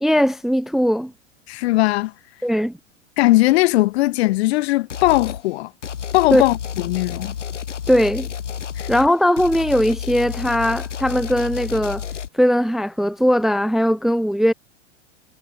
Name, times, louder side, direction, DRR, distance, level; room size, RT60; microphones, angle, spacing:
voice 1, 0.0-1.1 2.4-2.7 6.3-6.4 7.9-8.3 8.9-12.0 12.3-14.5, equal, ahead, 0.7 m, -19 dB
voice 2, 1.5-2.1 3.2-5.7 6.1-7.4 8.8-8.9, left 18 dB, 60° left, 2.3 m, -19 dB
sound 1, 4.9-5.4 5.8-12.3, left 8 dB, 85° left, 7.8 m, -30 dB
hypercardioid pair, 95°, 35 cm